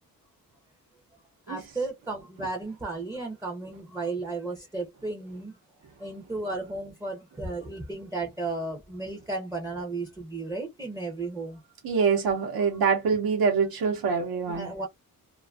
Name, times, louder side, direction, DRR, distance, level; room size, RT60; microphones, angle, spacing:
voice 1, 1.5-5.6 6.0-11.6 14.3-14.9, right 3 dB, 10° right, 0.4 m, -34 dB
voice 2, 11.8-14.7, right 5 dB, 85° right, 0.9 m, -25 dB
2.5 x 2.4 x 2.2 m
wide cardioid pair, 135°, 35 cm